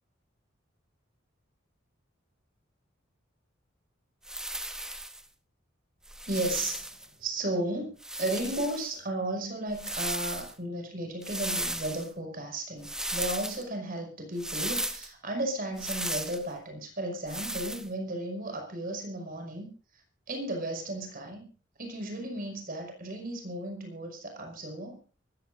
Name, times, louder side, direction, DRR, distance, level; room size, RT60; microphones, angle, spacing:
sound 1, 4.2-5.2 6.0-7.1 8.0-8.9 9.7-10.5 11.2-12.1 12.8-13.6 14.4-15.1 15.8-16.4 17.3-17.9, right 1 dB, 5° right, 0.8 m, -35 dB
voice 1, 6.3-7.9 8.2-19.7 20.3-21.5 21.8-25.0, right 1 dB, 50° right, 3 dB, 5.8 m, -34 dB
24.5 x 15.0 x 2.7 m, 0.38 s
head